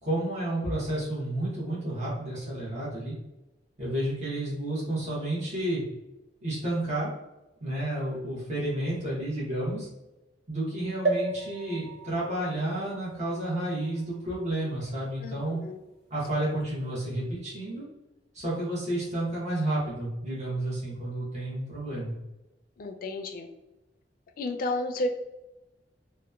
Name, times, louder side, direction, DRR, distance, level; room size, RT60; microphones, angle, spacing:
voice 1, 0.0-3.1 3.8-5.8 6.4-7.1 7.6-9.9 10.5-15.6 16.1-17.8 18.3-22.2, right 1 dB, 40° right, -8 dB, 0.9 m, -31 dB
sound 1, 11.1-14.7 15.3-15.4 15.6-15.7, right 3 dB, 75° right, 0.6 m, -34 dB
voice 2, 15.2-15.8 22.8-23.5 24.4-25.1, left 2 dB, 50° left, 5 dB, 0.3 m, -32 dB
2.8 x 2.1 x 2.3 m, 0.99 s
head